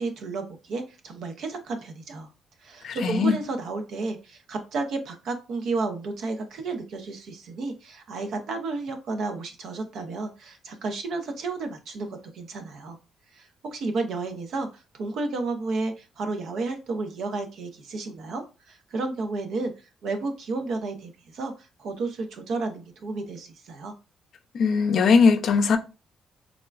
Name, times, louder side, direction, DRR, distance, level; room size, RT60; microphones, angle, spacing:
voice 1, 0.0-2.3 2.6-13.0 13.3-19.7 20.0-23.9, right 3 dB, 70° right, 0.6 m, -32 dB
voice 2, 2.8-3.4 24.5-25.8, left 5 dB, 60° left, 0.4 m, -20 dB
3.6 x 2.2 x 2.3 m
cardioid pair, 90°, 0 cm